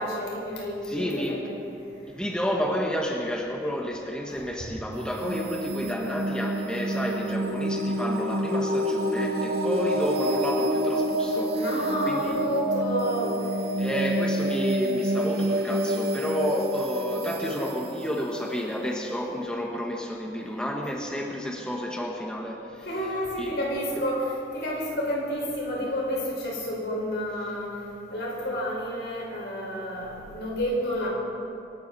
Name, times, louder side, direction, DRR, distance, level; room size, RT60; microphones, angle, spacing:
voice 1, 0.0-1.6 4.3-4.4 11.5-13.4 22.8-27.8 28.1-31.1, equal, 90° left, -3 dB, 5.0 m, -30 dB
voice 2, 0.8-1.4 2.0-11.6 12.0-12.4 13.8-22.8 23.4-23.5, equal, 5° left, 0 dB, 1.3 m, -31 dB
sound 1, 5.0-19.6, right 1 dB, 60° right, 1.0 m, -28 dB
25.0 x 12.5 x 4.2 m, 2.6 s
head